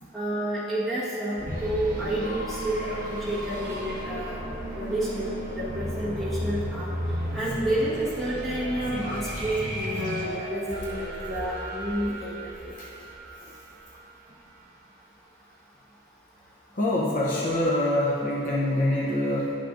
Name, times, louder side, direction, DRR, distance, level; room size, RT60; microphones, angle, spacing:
voice 1, 0.1-4.4 4.8-6.9 7.3-12.7, right 1 dB, ahead, -10 dB, 1.3 m, -30 dB
sound 1, 1.4-14.1, right 1 dB, 40° right, 1.2 m, -34 dB
voice 2, 16.7-19.6, left 1 dB, 40° left, -5 dB, 0.6 m, -25 dB
9.7 x 5.8 x 2.5 m, 2.8 s
head